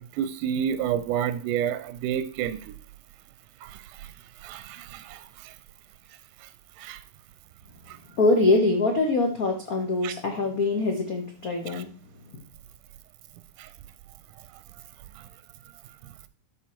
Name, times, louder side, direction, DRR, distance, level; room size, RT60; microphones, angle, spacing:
voice 1, 0.1-2.8 3.6-4.1 4.4-5.5 6.4-6.5 6.8-7.0 7.9-8.0 10.0-10.1 11.7-11.8 13.6-13.7 15.2-15.3, right 9 dB, 90° right, 13 dB, 2.2 m, -30 dB
voice 2, 8.1-11.9 12.3-12.4, left 2 dB, 85° left, 1 dB, 0.7 m, -24 dB
12.5 x 4.4 x 4.4 m, 0.40 s
omnidirectional pair, 3.6 m